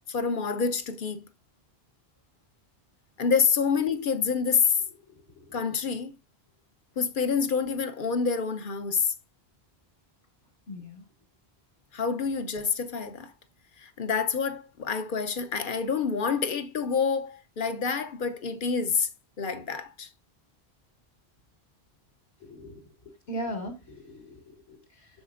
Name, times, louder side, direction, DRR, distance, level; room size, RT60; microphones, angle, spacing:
voice 1, 0.1-1.2 3.2-4.8 5.5-6.1 7.0-9.1 11.9-13.3 13.8-19.1 19.4-20.1, left 5 dB, 55° left, 0.9 m, -27 dB
voice 2, 10.7-11.0 22.4-25.1, equal, 70° left, 2.1 m, -39 dB
12.5 x 4.2 x 2.5 m
omnidirectional pair, 1.1 m